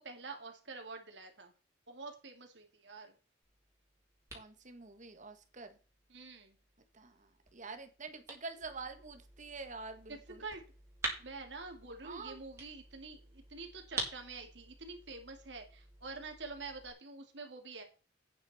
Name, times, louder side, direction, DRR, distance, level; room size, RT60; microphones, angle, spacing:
voice 1, 0.0-1.5 1.9-3.1 6.1-6.6 10.1-10.6 11.2-17.8, right 3 dB, 70° right, 4 dB, 2.7 m, -47 dB
sound 1, 3.4-16.9, right 2 dB, 15° right, 4.2 m, -48 dB
voice 2, 4.3-5.8 6.9-10.4 12.0-12.4, right 4 dB, 45° right, 7 dB, 1.7 m, -47 dB
9.5 x 9.3 x 4.3 m, 0.35 s
head